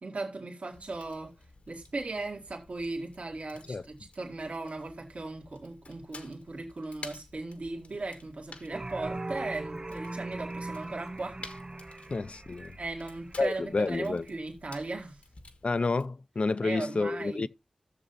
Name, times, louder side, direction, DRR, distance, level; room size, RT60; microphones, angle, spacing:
voice 1, 0.0-1.3 1.7-11.5 12.0-12.2 12.8-15.2 16.6-17.5, right 2 dB, 70° right, 2.1 m, -37 dB
Fire, 0.7-16.1, left 3 dB, 80° left, 1.4 m, -52 dB
sound 1, 8.7-14.3, right 2 dB, 35° right, 0.6 m, -40 dB
voice 2, 12.1-12.8 13.4-14.3 15.6-17.5, left 3 dB, 55° left, 0.5 m, -29 dB
17.0 x 6.9 x 2.6 m
cardioid pair, 50°, 2 cm